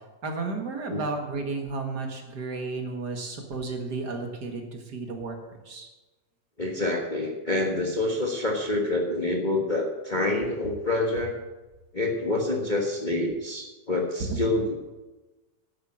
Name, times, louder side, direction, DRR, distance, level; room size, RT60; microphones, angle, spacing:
voice 1, 0.2-5.9 14.3-14.4, right 3 dB, 40° right, 3 dB, 1.8 m, -33 dB
voice 2, 6.6-11.4 11.9-14.7, left 2 dB, 45° left, 0 dB, 0.6 m, -27 dB
11.0 x 8.8 x 7.3 m, 1.1 s
omnidirectional pair, 3.4 m